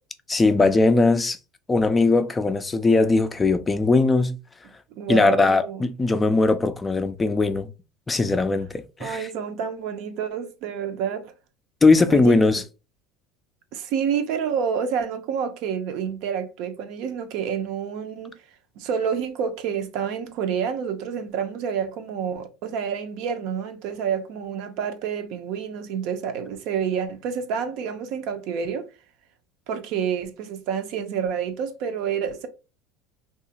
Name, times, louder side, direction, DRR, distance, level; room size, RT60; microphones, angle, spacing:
voice 1, 0.3-1.4 1.7-4.4 5.1-7.7 8.1-9.3 11.8-12.6, left 3 dB, 20° left, 0.3 m, -19 dB
voice 2, 5.0-5.8 9.0-11.3 12.1-12.4 13.7-18.4 18.8-28.9 29.7-32.5, right 7 dB, 65° right, 0.5 m, -28 dB
2.7 x 2.3 x 2.7 m
supercardioid pair, 115°, 0 cm